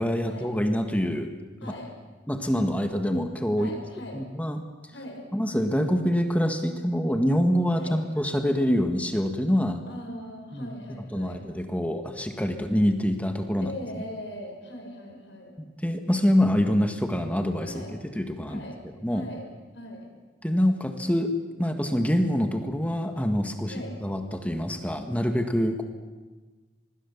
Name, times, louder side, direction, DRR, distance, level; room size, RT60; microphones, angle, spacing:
voice 1, 0.0-1.3 1.6-1.8 2.3-3.8 4.1-4.6 5.3-9.8 10.5-13.7 15.8-18.7 19.0-19.3 20.4-25.8, equal, 10° left, 5 dB, 1.6 m, -25 dB
voice 2, 1.6-1.9 3.6-4.2 4.9-5.3 7.7-8.0 9.9-11.4 13.6-15.6 17.6-17.9 18.5-18.8 19.1-19.5 19.7-20.1 23.7-23.9, left 1 dB, 75° left, 1 dB, 6.9 m, -40 dB
26.5 x 20.5 x 7.2 m, 1.3 s
head